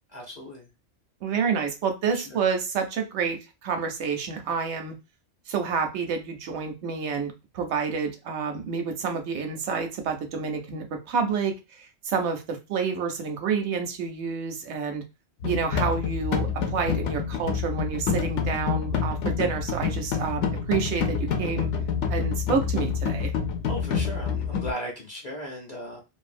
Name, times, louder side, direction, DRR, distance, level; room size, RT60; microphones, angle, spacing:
voice 1, 0.1-0.7 2.1-2.4 23.7-26.0, equal, 45° left, -1 dB, 0.6 m, -36 dB
voice 2, 1.2-4.9 5.5-15.0 15.4-21.7 22.1-23.3, right 5 dB, 75° right, 5 dB, 0.9 m, -29 dB
sound 1, 15.4-24.7, left 6 dB, 90° left, 0.9 m, -27 dB
2.7 x 2.2 x 2.5 m, 0.26 s
omnidirectional pair, 1.2 m